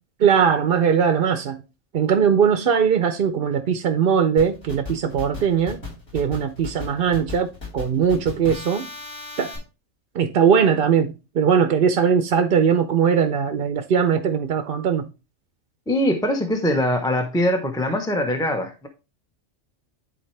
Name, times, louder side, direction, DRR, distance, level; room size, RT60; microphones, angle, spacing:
voice 1, 0.2-1.6 1.9-5.8 6.1-8.9 9.4-9.5 10.1-15.1, right 7 dB, 55° right, 0.7 m, -20 dB
sound 1, 4.4-9.6, left 3 dB, 55° left, 4.3 m, -35 dB
voice 2, 15.9-18.9, left 1 dB, 5° left, 0.7 m, -22 dB
10.0 x 4.3 x 3.2 m
omnidirectional pair, 1.3 m